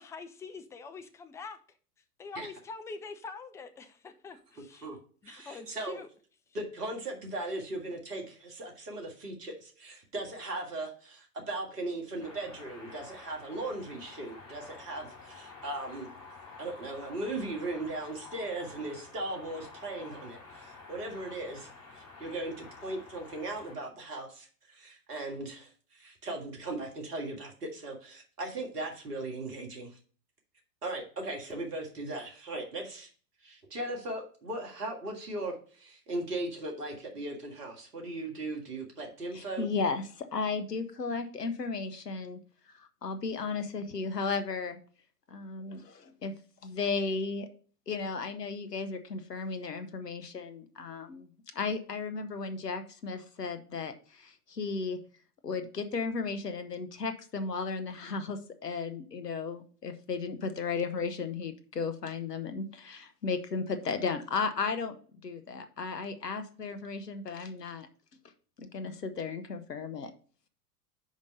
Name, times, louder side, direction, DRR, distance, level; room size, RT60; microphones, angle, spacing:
voice 1, 0.0-1.6 2.2-4.9 5.2-6.1, left 4 dB, 5° left, 7 dB, 0.4 m, -44 dB
voice 2, 5.2-6.0 6.5-16.1 16.6-30.0 30.8-33.1 33.4-39.7, right 2 dB, 80° right, 1 dB, 2.0 m, -38 dB
sound 1, 12.2-23.8, left 4 dB, 35° left, 3.9 m, -50 dB
voice 3, 39.3-42.4 42.7-44.8 45.3-46.3 46.6-47.5 47.9-51.3 51.5-55.0 55.4-65.0 65.2-67.9 68.6-70.1, left 4 dB, 90° left, 10 dB, 1.0 m, -35 dB
5.3 x 5.2 x 6.4 m, 0.42 s
figure-of-eight pair, 95°, 47 cm